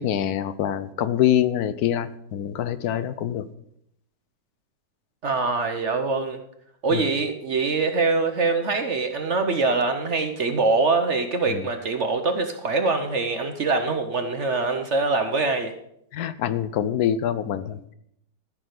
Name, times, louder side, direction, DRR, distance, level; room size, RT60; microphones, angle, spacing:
voice 1, 0.0-3.5 6.9-7.0 11.5-11.7 16.1-17.9, left 10 dB, 65° left, 14 dB, 1.0 m, -25 dB
voice 2, 5.2-6.4 6.8-15.7, right 3 dB, 50° right, 7 dB, 1.0 m, -24 dB
13.5 x 6.2 x 6.5 m, 0.73 s
omnidirectional pair, 1.9 m